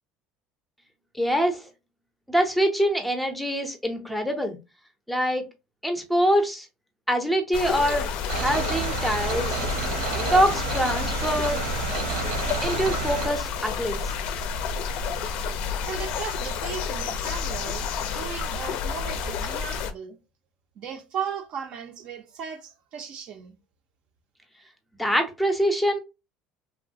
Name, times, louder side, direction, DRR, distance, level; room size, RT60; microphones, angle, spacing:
voice 1, 1.2-1.6 2.3-4.6 5.1-5.4 5.8-6.7 7.1-9.6 10.3-11.6 12.6-14.1 25.0-26.0, equal, ahead, 0.5 m, -24 dB
sound 1, 7.5-19.9, left 6 dB, 60° left, 0.4 m, -30 dB
sound 2, 8.3-13.3, right 5 dB, 85° right, 0.9 m, -30 dB
voice 2, 15.8-20.2 20.8-23.5, right 7 dB, 50° right, 0.5 m, -36 dB
3.0 x 2.1 x 2.6 m
cardioid pair, 150°, 2 cm